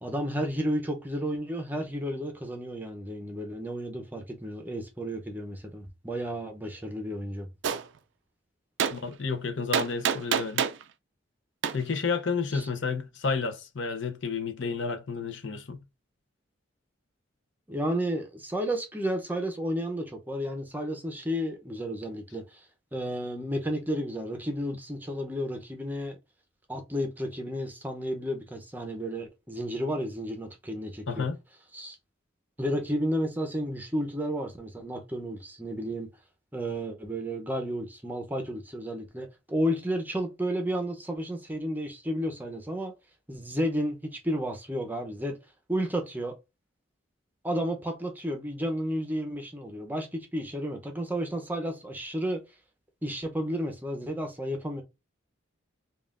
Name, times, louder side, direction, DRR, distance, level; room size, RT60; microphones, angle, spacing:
voice 1, 0.0-7.5 12.5-12.7 17.7-22.7 22.9-26.2 26.7-31.3 31.7-32.0 32.6-36.1 36.5-42.9 43.3-45.4 45.7-46.4 47.4-52.4 53.0-54.8, equal, 10° right, 0.6 m, -32 dB
Gunshot gunfire, 7.6-7.8 8.8-9.0 9.7-10.8 11.6-11.8, right 8 dB, 60° right, 0.3 m, -26 dB
voice 2, 8.9-10.7 11.7-15.8 31.1-31.4, left 4 dB, 60° left, 0.6 m, -31 dB
5.3 x 2.4 x 2.4 m
head